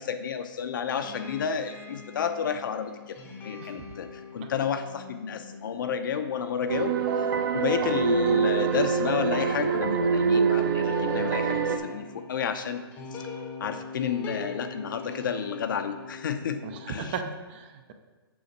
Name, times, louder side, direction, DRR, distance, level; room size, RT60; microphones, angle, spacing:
voice 1, 0.0-3.2 3.4-6.9 7.5-12.8 13.6-17.1, left 7 dB, 50° left, 8 dB, 0.7 m, -31 dB
sound 1, 0.8-16.9, left 4 dB, 15° left, 0.8 m, -43 dB
voice 2, 3.6-3.9 4.4-4.5 16.6-17.9, right 5 dB, 25° right, 7 dB, 0.5 m, -37 dB
sound 2, 6.7-11.8, right 5 dB, 50° right, 0.9 m, -25 dB
7.0 x 5.0 x 6.5 m, 1.2 s
hypercardioid pair, 165°, 13 cm